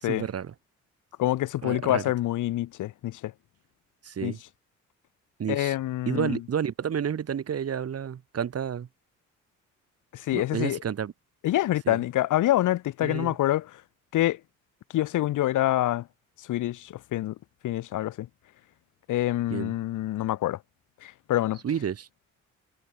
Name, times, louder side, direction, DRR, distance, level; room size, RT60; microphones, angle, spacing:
voice 1, 0.0-0.5 1.6-2.0 4.0-4.4 5.4-5.7 6.1-8.9 10.3-11.1 11.9-12.0 13.0-13.3 19.5-19.7 21.6-22.1, right 8 dB, 55° right, 4.1 m, -30 dB
voice 2, 1.2-3.3 4.2-4.3 5.5-6.4 10.1-10.8 11.4-13.7 14.1-14.4 14.9-16.1 16.4-17.4 17.6-18.3 19.1-20.6 21.0-21.6, left 14 dB, 85° left, 3.8 m, -26 dB
cardioid pair, 90°, 30 cm